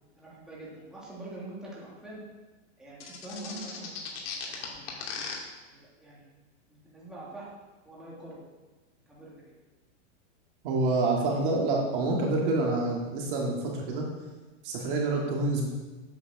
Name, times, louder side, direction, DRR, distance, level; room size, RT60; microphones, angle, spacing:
voice 1, 0.2-2.2 2.8-4.9 5.6-6.2 6.7-7.5 7.8-8.4 9.1-9.6, right 2 dB, ahead, -7 dB, 2.7 m, -45 dB
sound 1, 3.0-5.3, left 7 dB, 55° left, 2.7 m, -36 dB
voice 2, 10.6-14.0 14.6-15.7, right 2 dB, 45° right, -1 dB, 2.3 m, -27 dB
9.0 x 7.9 x 6.1 m, 1.2 s
supercardioid pair, 160°, 36 cm